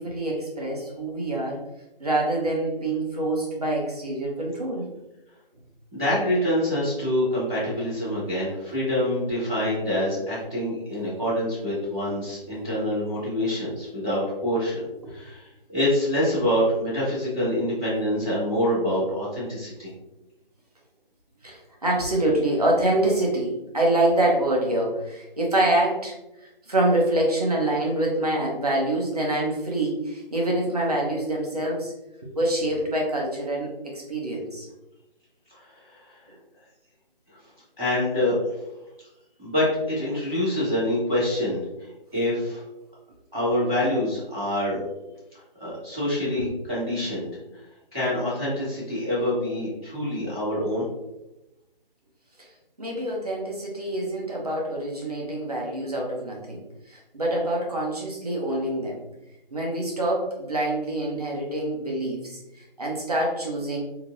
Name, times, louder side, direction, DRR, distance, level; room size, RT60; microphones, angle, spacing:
voice 1, 0.0-1.7 2.0-4.9 7.0-7.1 15.0-15.1 21.4-26.1 26.4-31.9 32.2-34.7 52.8-59.0 59.5-63.8, right 1 dB, 40° right, -2 dB, 0.8 m, -26 dB
voice 2, 5.9-19.9 35.5-35.6 35.9-36.2 37.8-38.3 39.4-41.6 42.1-42.6 43.3-44.8 45.6-47.3 47.9-50.9, left 1 dB, 5° left, -26 dB, 1.0 m, -26 dB
3.3 x 2.8 x 2.5 m, 0.95 s
hypercardioid pair, 180°, 29 cm